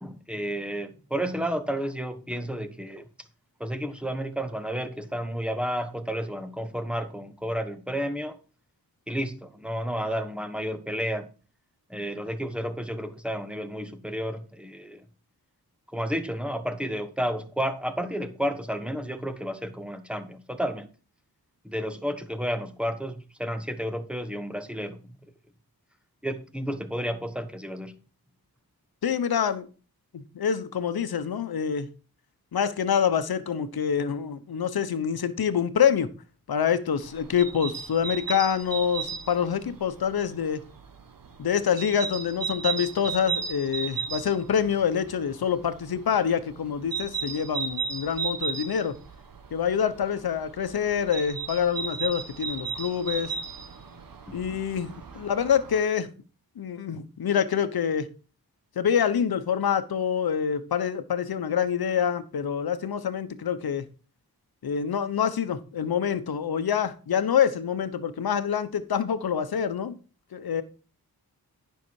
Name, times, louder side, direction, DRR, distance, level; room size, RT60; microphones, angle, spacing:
voice 1, 0.0-3.1 3.6-8.4 9.1-11.3 11.9-15.0 15.9-20.9 21.6-25.0 26.2-27.9 54.3-54.4, equal, 5° right, 1.1 m, -31 dB
voice 2, 29.0-29.7 30.1-31.9 32.5-36.1 36.5-40.6 41.4-48.9 49.5-53.4 54.3-56.1 56.6-58.1 58.8-63.8 64.6-70.0 70.3-70.6, left 8 dB, 75° left, 1.0 m, -26 dB
sound 1, 37.0-55.8, right 6 dB, 65° right, 1.2 m, -36 dB
10.5 x 5.7 x 4.7 m
wide cardioid pair, 95°, 38 cm